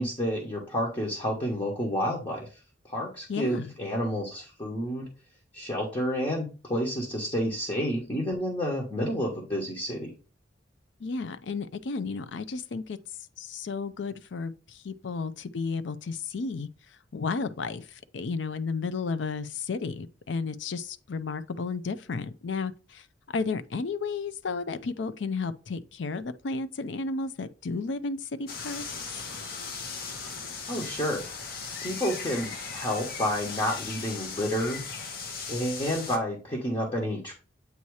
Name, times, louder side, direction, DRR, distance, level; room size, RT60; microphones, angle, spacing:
voice 1, 0.0-2.5 2.9-5.1 5.5-10.1 30.7-31.2 31.8-34.8 35.5-37.3, equal, 25° left, 1.1 m, -30 dB
voice 2, 3.3-3.7 11.0-13.0 13.4-28.8 29.2-29.3, left 4 dB, 70° left, 0.5 m, -33 dB
sound 1, 28.5-36.2, left 5 dB, 55° left, 0.9 m, -37 dB
8.3 x 2.8 x 4.7 m
head